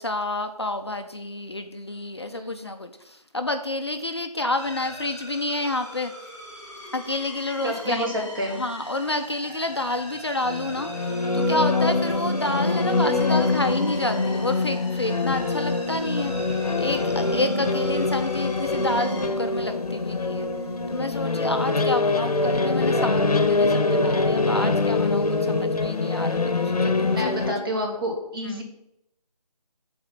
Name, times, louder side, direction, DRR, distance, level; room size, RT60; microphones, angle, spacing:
voice 1, 0.0-6.1 6.9-8.3 8.6-20.5 20.9-27.5 28.4-28.6, left 2 dB, 40° left, 7 dB, 0.4 m, -29 dB
voice 2, 2.3-2.7 7.6-8.6 17.2-17.4 27.1-28.6, equal, 35° right, 1 dB, 1.4 m, -30 dB
sound 1, 4.5-19.3, equal, 5° right, 1.3 m, -41 dB
sound 2, 10.4-27.6, left 3 dB, 65° left, 0.8 m, -24 dB
6.3 x 4.2 x 5.8 m, 0.84 s
figure-of-eight pair, 165°, 21 cm